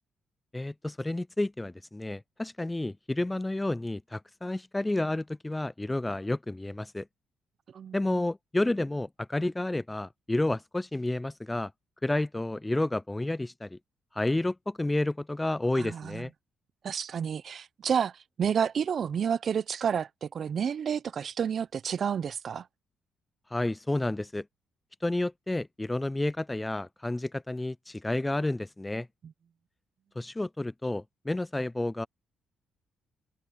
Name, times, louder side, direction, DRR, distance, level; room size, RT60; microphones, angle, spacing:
voice 1, 0.5-7.1 7.9-11.7 12.0-13.8 14.1-16.3 23.5-24.5 25.0-29.1 30.2-32.1, left 2 dB, 10° left, 0.4 m, -30 dB
voice 2, 15.7-16.3 16.8-18.1 18.4-22.7, right 7 dB, 55° right, 0.7 m, -30 dB
cardioid pair, 90°, 0 cm